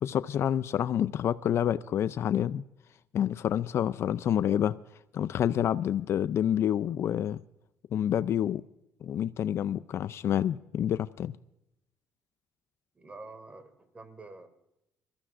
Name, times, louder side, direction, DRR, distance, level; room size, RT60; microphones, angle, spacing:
voice 1, 0.0-2.6 3.1-4.8 5.1-7.4 7.9-8.6 9.0-11.3, left 10 dB, 50° left, 0.4 m, -28 dB
voice 2, 12.9-14.5, right 3 dB, 25° right, 2.1 m, -47 dB
23.5 x 15.0 x 2.5 m
cardioid pair, 120°, 6 cm